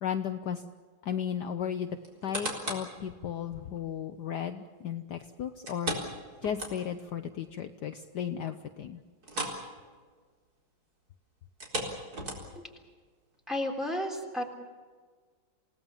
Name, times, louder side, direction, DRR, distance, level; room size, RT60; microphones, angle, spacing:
voice 1, 0.0-0.6 1.0-2.0 2.2-6.0 6.4-9.0, left 8 dB, 65° left, 8 dB, 1.4 m, -35 dB
sound 1, 2.0-2.9 3.5-3.6 5.6-7.1 7.4-7.5 8.0-8.1 9.2-9.7 9.9-10.1 11.5-12.7 13.3-13.4, right 1 dB, 50° right, 4.7 m, -36 dB
voice 2, 13.5-14.4, left 1 dB, ahead, 0 dB, 3.5 m, -32 dB
28.0 x 18.0 x 7.3 m, 1.5 s
omnidirectional pair, 2.1 m